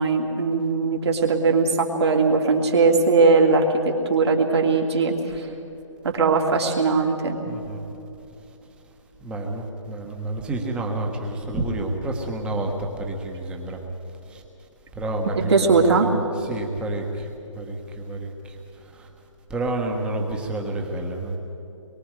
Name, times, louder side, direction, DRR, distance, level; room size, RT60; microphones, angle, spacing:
voice 1, 0.0-5.5 6.0-7.4 15.5-16.1, right 4 dB, 55° right, 1 dB, 2.9 m, -20 dB
voice 2, 7.4-7.8 9.2-13.8 14.3-14.4 14.9-17.3 17.5-19.1 19.5-21.4, right 2 dB, 5° right, 2 dB, 1.4 m, -29 dB
25.0 x 22.5 x 4.9 m, 2.9 s
figure-of-eight pair, 155°, 16 cm